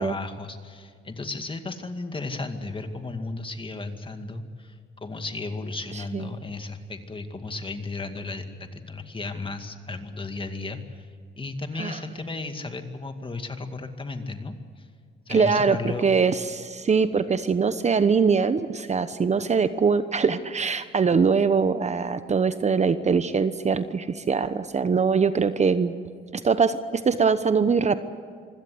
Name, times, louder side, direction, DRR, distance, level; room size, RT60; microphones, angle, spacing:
voice 1, 0.0-11.1 11.4-14.9 15.3-16.1, left 3 dB, 25° left, 7 dB, 2.2 m, -34 dB
voice 2, 15.3-15.8 16.0-25.9 26.3-26.8 27.0-28.0, right 5 dB, 35° right, 12 dB, 1.0 m, -22 dB
25.5 x 17.0 x 7.9 m, 2.1 s
cardioid pair, 90°, 20 cm